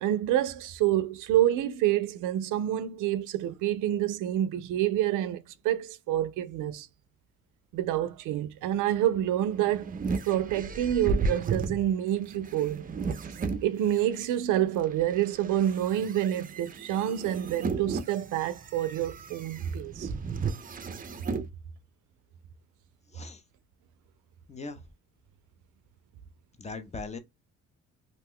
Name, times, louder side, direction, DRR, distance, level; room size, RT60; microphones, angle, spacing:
voice 1, 0.0-6.9 7.7-10.0 10.2-12.9 13.6-20.1, right 12 dB, 85° right, 0.4 m, -28 dB
sound 1, 9.2-14.3 14.8-21.5, right 4 dB, 30° right, 0.4 m, -34 dB
voice 2, 24.5-24.8 26.6-27.2, left 3 dB, 25° left, 0.5 m, -39 dB
2.5 x 2.1 x 3.5 m
cardioid pair, 90°, 30 cm